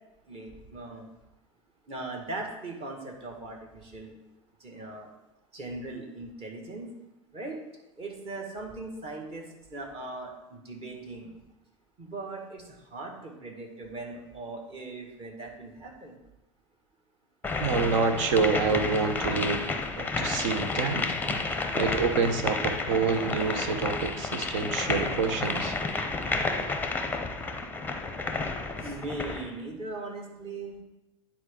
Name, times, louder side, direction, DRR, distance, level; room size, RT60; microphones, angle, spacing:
voice 1, 0.3-1.1 1.9-4.1 4.6-5.1 5.5-7.0 7.3-7.6 8.0-11.3 12.0-16.2 28.8-30.8, right 2 dB, 35° right, 1 dB, 1.8 m, -39 dB
sound 1, 17.4-29.5, left 3 dB, 10° left, 0.7 m, -31 dB
voice 2, 17.6-19.7 20.0-21.0 21.7-25.8, right 5 dB, 60° right, 8 dB, 0.9 m, -27 dB
9.7 x 4.3 x 3.8 m, 0.95 s
figure-of-eight pair, 85°, 17 cm